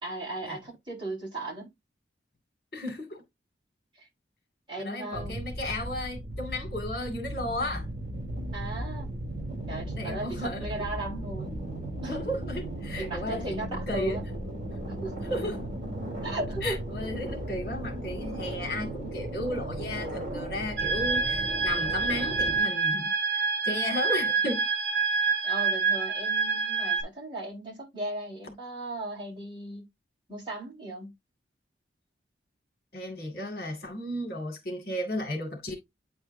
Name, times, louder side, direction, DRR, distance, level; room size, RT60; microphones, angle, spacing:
voice 1, 0.0-1.7 4.0-4.1 4.7-5.4 8.5-9.1 9.7-11.6 12.0-12.2 13.0-14.2 14.9-15.1 16.2-16.8 25.4-29.8 30.3-31.1, right 2 dB, 25° right, 4.4 m, -36 dB
voice 2, 2.7-3.2 4.8-7.9 9.9-10.7 12.1-13.6 13.9-14.2 15.3-15.6 16.6-23.1 23.6-24.7 32.9-35.7, left 1 dB, 55° left, 2.2 m, -34 dB
sound 1, 5.1-22.6, right 1 dB, 45° right, 3.5 m, -36 dB
sound 2, 20.8-27.0, right 5 dB, 60° right, 3.6 m, -27 dB
9.3 x 4.4 x 2.7 m
head